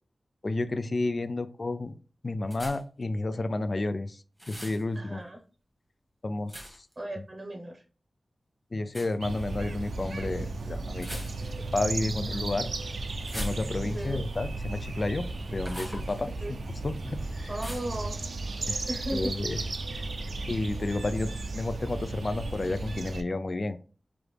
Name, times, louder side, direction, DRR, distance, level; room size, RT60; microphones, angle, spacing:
voice 1, 0.4-2.0 2.2-5.2 6.2-6.9 8.7-11.2 11.7-12.7 13.3-16.6 16.8-17.5 18.7-19.6 19.9-20.1 20.5-23.8, left 2 dB, 40° left, 12 dB, 0.3 m, -31 dB
sound 1, 2.5-3.0 4.4-4.8 6.5-6.9 8.9-9.1 10.9-11.7 13.2-14.0 15.6-16.1 17.6-18.0, equal, 10° right, 1.2 m, -40 dB
voice 2, 4.9-5.4 7.0-7.8 13.8-14.2 16.4-16.5 17.5-18.2 18.9-19.3, right 1 dB, 30° right, 2 dB, 0.8 m, -36 dB
sound 2, 9.2-23.2, right 2 dB, 75° right, 0.4 m, -35 dB
5.0 x 2.4 x 3.2 m, 0.38 s
wide cardioid pair, 110°, 0 cm